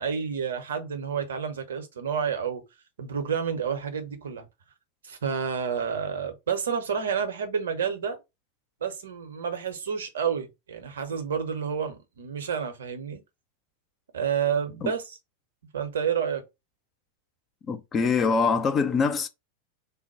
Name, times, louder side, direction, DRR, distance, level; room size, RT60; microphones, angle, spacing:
voice 1, 0.0-2.6 3.0-4.5 5.0-8.2 8.8-13.2 14.1-15.2 15.7-16.4, right 7 dB, 65° right, 0.8 m, -29 dB
voice 2, 17.7-19.3, left 5 dB, 25° left, 0.5 m, -24 dB
3.4 x 2.1 x 4.2 m
figure-of-eight pair, 90°, 0 cm